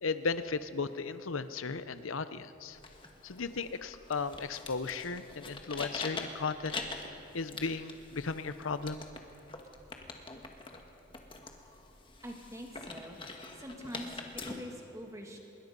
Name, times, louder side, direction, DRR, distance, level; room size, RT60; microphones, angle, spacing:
voice 1, 0.0-2.8 3.2-6.8 7.3-9.1, left 4 dB, 90° left, 13 dB, 0.8 m, -35 dB
sound 1, 2.7-14.5, left 3 dB, 25° left, 1.6 m, -44 dB
voice 2, 12.2-13.2 13.6-15.4, equal, 15° right, 1 dB, 2.4 m, -44 dB
25.5 x 22.0 x 5.4 m, 2.9 s
head